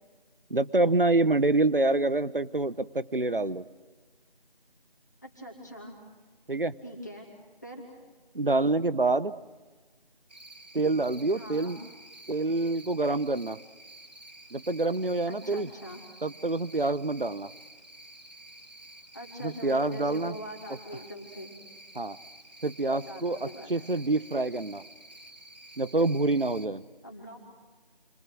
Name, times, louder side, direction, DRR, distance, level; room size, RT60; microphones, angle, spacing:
voice 1, 0.5-3.6 6.5-6.8 8.3-9.3 10.7-11.8 12.3-13.6 14.5-15.7 16.2-17.5 19.4-20.3 21.9-22.2 22.6-24.8 25.8-26.8, right 2 dB, 65° right, 15 dB, 1.1 m, -26 dB
voice 2, 5.2-6.0 6.8-7.3 7.6-7.8 11.3-11.7 15.3-16.0 19.1-21.5 22.9-23.7 27.0-27.4, equal, 20° left, -1 dB, 2.6 m, -42 dB
Cricket, 10.3-26.7, right 1 dB, 45° right, 2.1 m, -50 dB
30.0 x 24.5 x 6.3 m, 1.3 s
figure-of-eight pair, 175°, 29 cm